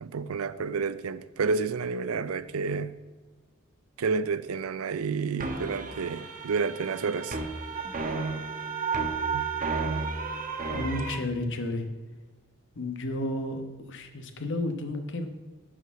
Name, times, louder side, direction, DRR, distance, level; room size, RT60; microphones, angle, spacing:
voice 1, 0.0-3.0 4.0-7.4 9.3-9.5, right 4 dB, 90° right, 0.5 m, -30 dB
sound 1, 5.4-11.2, right 4 dB, 40° right, 1.1 m, -32 dB
voice 2, 10.7-11.9 12.8-13.6 13.9-15.3, left 1 dB, 60° left, 1.1 m, -32 dB
10.0 x 4.9 x 6.9 m
head